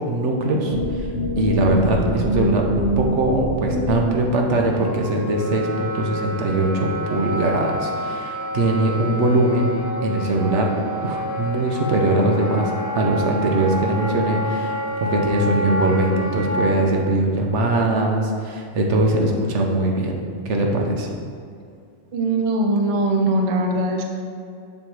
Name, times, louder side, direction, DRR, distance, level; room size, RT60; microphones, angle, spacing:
voice 1, 0.1-1.1 1.4-9.7 10.0-10.7 11.0-21.1, right 2 dB, 75° right, 1 dB, 1.2 m, -21 dB
sound 1, 0.7-4.2, equal, 70° left, 1.6 m, -24 dB
Wind instrument woodwind instrument, 4.7-16.8, equal, 20° left, 0.4 m, -29 dB
voice 2, 22.1-24.1, right 2 dB, 35° right, 2 dB, 0.6 m, -21 dB
7.3 x 3.3 x 6.2 m, 2.4 s
omnidirectional pair, 1.2 m